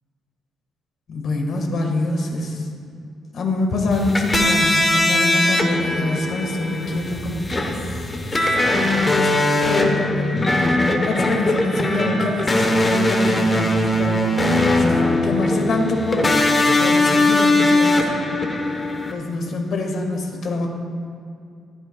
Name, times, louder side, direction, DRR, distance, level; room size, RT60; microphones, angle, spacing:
voice 1, 1.1-2.7 3.3-14.2 14.5-15.0 15.2-16.3 16.8-18.0 19.1-20.7, left 2 dB, 55° left, 2 dB, 1.4 m, -25 dB
sound 1, 3.9-19.1, left 1 dB, 20° left, 0.8 m, -20 dB
15.0 x 11.5 x 2.2 m, 2.4 s
cardioid pair, 140°, 0 cm